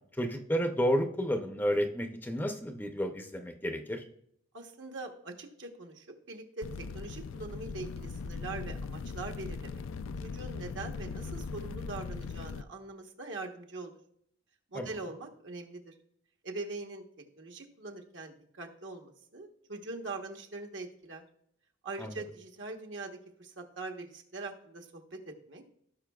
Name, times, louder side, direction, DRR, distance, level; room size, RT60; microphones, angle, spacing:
voice 1, 0.2-4.0 14.7-14.9 22.0-22.2, equal, 10° left, 5 dB, 0.5 m, -31 dB
voice 2, 4.5-9.8 10.2-14.0 14.7-15.9 16.4-17.0 17.4-21.2 21.8-25.6, right 3 dB, 65° right, 3 dB, 1.1 m, -42 dB
sound 1, 6.6-12.6, left 4 dB, 85° left, 0.4 m, -39 dB
16.5 x 5.5 x 2.3 m, 0.68 s
head